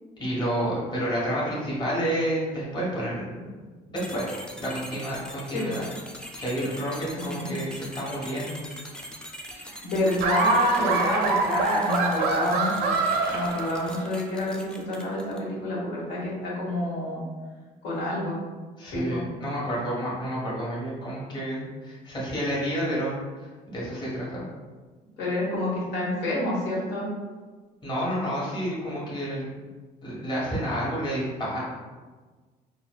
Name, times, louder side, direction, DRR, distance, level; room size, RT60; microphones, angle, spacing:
voice 1, 0.2-3.5 3.9-4.3 4.6-5.8 6.4-8.6 18.8-23.1 23.4-24.4 27.8-29.5 30.0-31.6, equal, 25° left, -6 dB, 1.3 m, -30 dB
sound 1, 4.0-15.5, equal, 5° left, 0.4 m, -42 dB
voice 2, 7.2-7.5 9.5-13.0 13.3-17.2 17.8-18.4 18.9-19.2 25.2-27.1, left 1 dB, 85° left, -6 dB, 1.3 m, -28 dB
Laughter, 10.2-14.2, right 4 dB, 85° right, 0.5 m, -25 dB
3.8 x 2.2 x 2.3 m, 1.4 s
cardioid pair, 110°, 17 cm